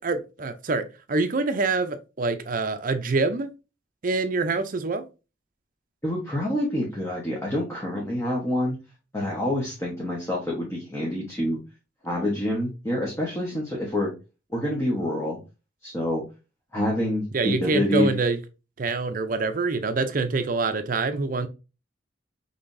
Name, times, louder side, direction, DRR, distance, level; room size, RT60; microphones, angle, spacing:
voice 1, 0.0-3.5 4.0-5.1 17.3-18.4 18.8-21.5, right 3 dB, 45° right, 0.5 m, -25 dB
voice 2, 6.0-8.8 9.1-11.6 12.0-14.1 14.5-15.4 15.8-16.2 16.7-18.2, left 1 dB, 15° left, 1.1 m, -27 dB
5.6 x 3.4 x 2.6 m
head